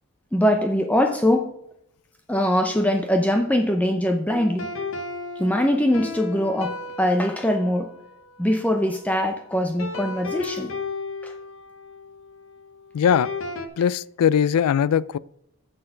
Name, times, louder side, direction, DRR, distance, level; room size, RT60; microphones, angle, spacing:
voice 1, 0.3-1.5 2.3-4.7 5.4-7.9 8.4-10.7 11.2-11.3, left 1 dB, 5° left, 0.5 m, -22 dB
sound 1, 4.3-9.1 9.8-13.7, left 3 dB, 60° left, 1.0 m, -35 dB
voice 2, 12.9-13.3 13.8-15.2, left 8 dB, 90° left, 0.3 m, -20 dB
7.5 x 6.7 x 5.7 m
head